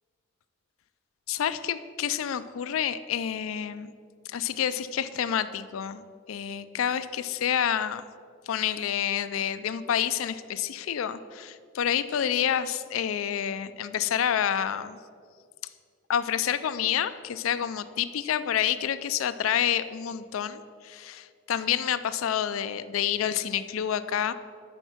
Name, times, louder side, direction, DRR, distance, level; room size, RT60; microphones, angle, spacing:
voice 1, 1.3-3.9 4.3-8.0 8.5-15.0 16.1-24.3, left 9 dB, 85° left, 13 dB, 0.4 m, -28 dB
10.5 x 4.5 x 5.8 m, 2.1 s
head